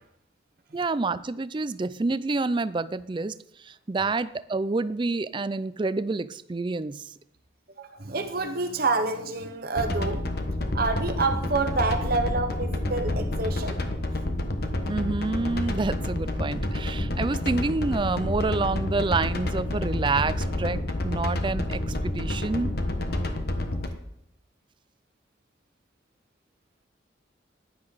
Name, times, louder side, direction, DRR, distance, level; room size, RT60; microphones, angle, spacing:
voice 1, 0.7-3.4 3.6-7.1 14.9-22.7, right 3 dB, 25° right, 15 dB, 0.4 m, -28 dB
voice 2, 7.8-10.2 10.7-13.8, right 3 dB, 50° right, 6 dB, 0.9 m, -28 dB
sound 1, 9.8-23.9, left 1 dB, 55° left, 1.2 m, -29 dB
15.0 x 10.5 x 4.0 m, 0.75 s
head